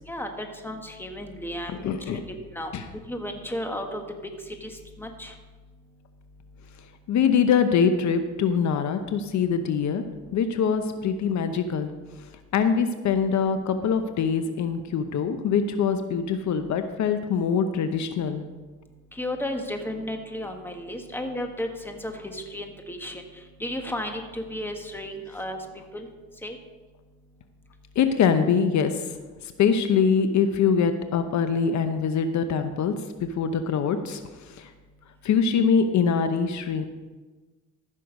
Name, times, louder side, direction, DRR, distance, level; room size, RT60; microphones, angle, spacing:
voice 1, 0.1-1.8 2.1-2.7 3.1-4.0 4.6-4.7 5.0-5.3 19.2-23.2 23.6-25.6 25.9-26.1 26.4-26.6, left 1 dB, 5° left, 4 dB, 1.5 m, -33 dB
voice 2, 1.8-2.2 2.7-2.8 7.1-10.0 10.3-11.9 12.5-18.4 28.0-28.9 29.6-32.9 33.4-34.2 34.6-34.7 35.2-36.8, left 6 dB, 70° left, 8 dB, 0.8 m, -23 dB
14.5 x 6.5 x 5.3 m, 1.3 s
cardioid pair, 90°, 30 cm